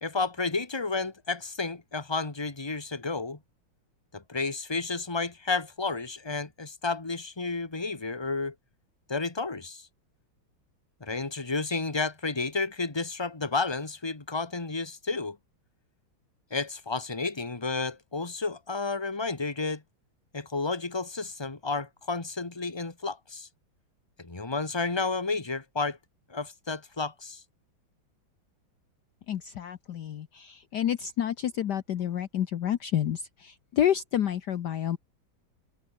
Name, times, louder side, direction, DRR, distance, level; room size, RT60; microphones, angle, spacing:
voice 1, 0.0-3.4 4.1-8.5 9.1-9.9 11.0-15.4 16.5-19.8 20.3-23.5 24.2-26.0 26.3-27.4, left 3 dB, 15° left, 1.9 m, -31 dB
voice 2, 29.3-35.0, left 10 dB, 60° left, 1.4 m, -29 dB
omnidirectional pair, 2.2 m